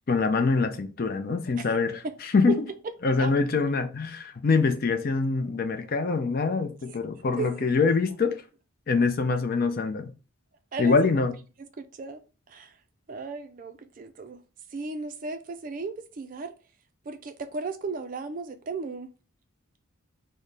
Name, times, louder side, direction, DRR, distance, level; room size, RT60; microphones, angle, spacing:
voice 1, 0.1-2.6 3.0-8.4 8.9-10.1 10.8-11.3, left 4 dB, 45° left, 0.4 m, -24 dB
voice 2, 7.4-7.8 10.7-11.0 11.6-12.2 12.5-12.7 13.1-14.4 14.7-16.5 17.1-19.1, right 3 dB, 40° right, 0.3 m, -35 dB
4.0 x 2.1 x 3.3 m
head